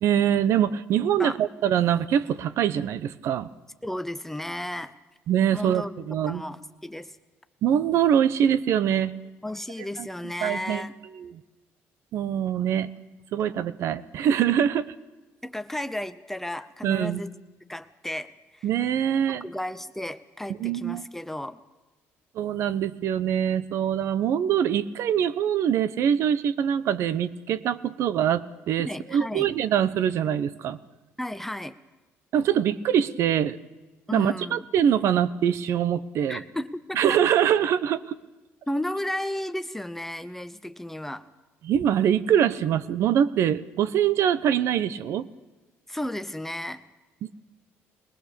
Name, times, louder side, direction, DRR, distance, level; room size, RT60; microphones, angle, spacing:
voice 1, 0.0-3.5 5.3-6.4 7.6-9.1 10.0-10.1 10.4-10.8 11.2-11.4 12.1-12.9 13.3-14.9 16.8-17.2 18.6-19.4 20.6-21.1 22.3-30.8 32.3-33.6 34.1-36.4 36.9-38.2 41.6-45.3, right 9 dB, 65° right, 16 dB, 0.9 m, -24 dB
voice 2, 3.8-4.9 5.5-5.9 6.3-7.2 9.4-11.0 15.4-17.3 17.7-18.7 19.3-21.6 28.8-29.5 31.2-31.7 34.1-34.7 36.3-37.0 38.7-41.3 45.9-46.8, left 1 dB, 5° left, 11 dB, 0.7 m, -33 dB
21.0 x 19.5 x 6.8 m, 1.2 s
cardioid pair, 110°, 5 cm